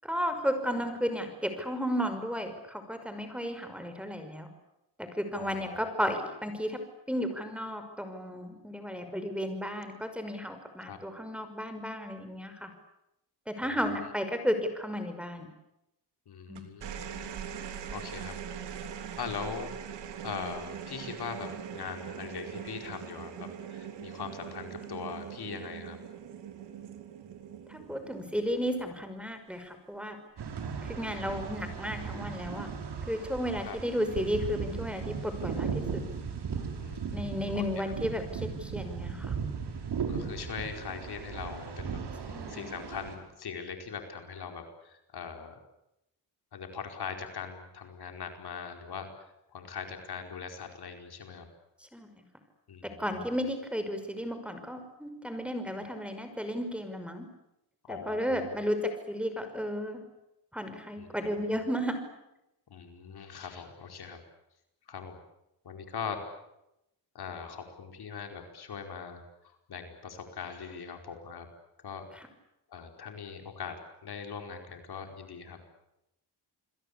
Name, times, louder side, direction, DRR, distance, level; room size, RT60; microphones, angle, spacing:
voice 1, 0.0-4.5 5.0-6.8 7.1-12.7 13.5-15.5 16.5-16.6 27.7-30.2 30.8-32.7 33.1-36.0 37.1-39.4 42.3-42.7 51.9-52.2 52.8-57.3 57.9-60.0 60.5-62.0, equal, 5° right, 8 dB, 5.7 m, -33 dB
voice 2, 5.3-5.9 10.8-11.0 13.6-13.7 16.3-17.0 17.9-18.4 19.2-19.7 20.2-26.0 31.2-31.3 33.7-33.8 36.8-37.9 39.7-45.6 46.5-49.1 49.5-51.5 52.7-53.0 57.8-58.6 61.0-61.1 62.7-64.2 64.9-65.2 65.6-66.2 67.1-69.2 69.7-71.5 71.8-72.1 72.7-75.6, left 6 dB, 65° left, 5 dB, 4.9 m, -41 dB
sound 1, 16.6-29.2 30.4-30.8, right 8 dB, 85° right, 3.3 m, -42 dB
sound 2, 30.4-43.2, right 6 dB, 70° right, 5.7 m, -37 dB
29.5 x 22.0 x 8.5 m, 0.87 s
cardioid pair, 95°, 41 cm